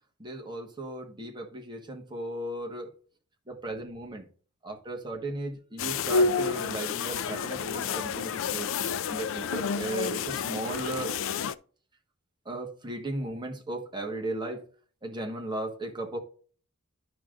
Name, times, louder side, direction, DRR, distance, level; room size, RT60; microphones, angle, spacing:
voice 1, 0.2-2.9 3.5-4.3 4.6-8.7 9.1-11.1 12.4-14.6 15.0-16.2, right 2 dB, 20° right, 1.2 m, -36 dB
sound 1, 5.8-11.6, left 5 dB, 60° left, 0.4 m, -29 dB
11.0 x 5.0 x 2.5 m
head